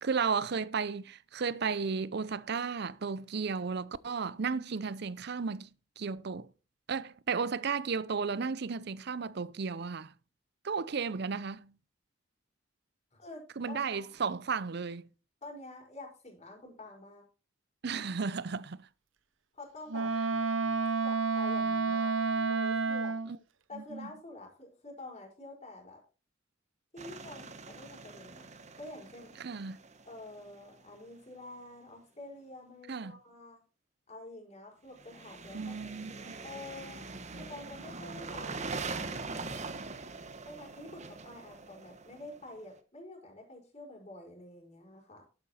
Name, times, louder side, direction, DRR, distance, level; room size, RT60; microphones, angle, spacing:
voice 1, 0.0-5.7 6.0-6.5 6.9-10.1 10.6-11.7 13.6-15.1 17.8-18.8 23.7-24.1 29.4-29.8 32.9-33.2 35.5-36.4, right 5 dB, 60° right, 0.6 m, -34 dB
voice 2, 13.7-14.1 15.4-17.2 19.5-20.1 21.0-23.1 23.7-26.0 26.9-28.5 28.8-29.4 30.1-33.6 34.1-38.7 40.4-45.2, left 2 dB, 35° left, 5.2 m, -48 dB
Wind instrument woodwind instrument, 19.9-23.4, right 4 dB, 85° right, 0.8 m, -30 dB
sound 1, 27.0-30.8 35.0-42.6, right 3 dB, 35° right, 1.1 m, -43 dB
12.0 x 8.9 x 4.2 m
head